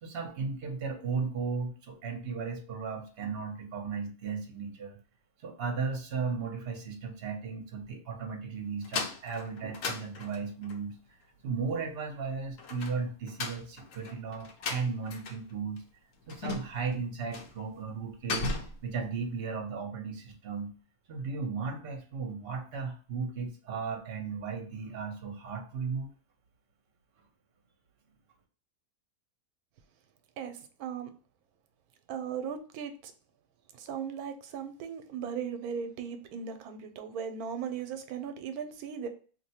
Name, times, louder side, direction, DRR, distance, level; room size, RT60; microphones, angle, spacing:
voice 1, 0.0-5.0 5.4-11.0 11.4-15.8 16.3-18.5 18.8-20.7 21.1-26.1, right 5 dB, 50° right, 3 dB, 0.9 m, -35 dB
sound 1, 8.8-10.8 12.6-15.5 15.8-15.9 16.3-16.9 17.3-17.6 17.9-18.9, left 3 dB, 65° left, 0.9 m, -36 dB
voice 2, 30.4-31.1 32.1-33.1 33.7-39.1, right 7 dB, 90° right, 7 dB, 1.1 m, -37 dB
2.8 x 2.1 x 4.1 m, 0.39 s
omnidirectional pair, 1.5 m